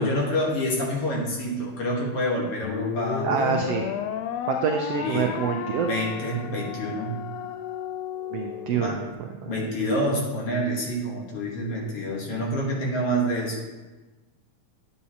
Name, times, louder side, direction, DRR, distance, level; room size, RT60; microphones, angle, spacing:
voice 1, 0.0-3.7 5.0-5.4 5.8-7.2 8.8-9.0 9.5-13.6, equal, 55° left, -2 dB, 2.1 m, -27 dB
sound 1, 2.6-9.1, left 9 dB, 85° left, 1.4 m, -33 dB
voice 2, 3.2-3.9 4.4-6.0 8.3-9.7, right 6 dB, 80° right, 3 dB, 1.4 m, -27 dB
10.5 x 8.5 x 2.8 m, 1.2 s
omnidirectional pair, 3.5 m